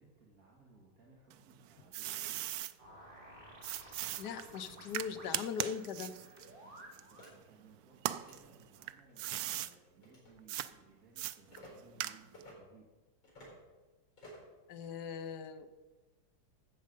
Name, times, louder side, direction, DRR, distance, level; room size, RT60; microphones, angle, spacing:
voice 1, 0.0-2.4 7.0-12.9, right 3 dB, 45° right, -4 dB, 2.3 m, -62 dB
sound 1, 1.3-2.7 3.6-7.5 7.9-9.7 10.5-10.7 11.2-12.5, right 13 dB, 85° right, 0.8 m, -39 dB
sound 2, 2.8-7.4, right 1 dB, 25° right, 2.2 m, -55 dB
voice 2, 4.2-6.2 14.7-15.7, left 7 dB, 65° left, 9 dB, 1.3 m, -40 dB
sound 3, 7.2-7.3 8.1-8.4 9.1-9.3 10.0-10.3 11.5-11.7 12.3-12.5 13.2-13.6 14.2-14.5, equal, 80° left, 5.1 m, -54 dB
13.0 x 7.8 x 5.3 m, 1.2 s
omnidirectional pair, 2.2 m